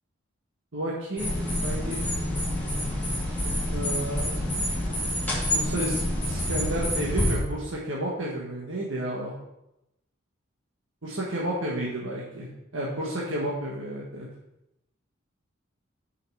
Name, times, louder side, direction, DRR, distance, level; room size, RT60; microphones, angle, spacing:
voice 1, 0.7-2.0 3.7-4.3 5.5-6.0 6.3-9.3 11.0-12.5 12.7-14.3, right 1 dB, 70° right, -4 dB, 1.5 m, -31 dB
sound 1, 1.2-7.4, left 1 dB, 10° left, 2.1 m, -27 dB
6.6 x 5.7 x 5.6 m, 0.88 s
head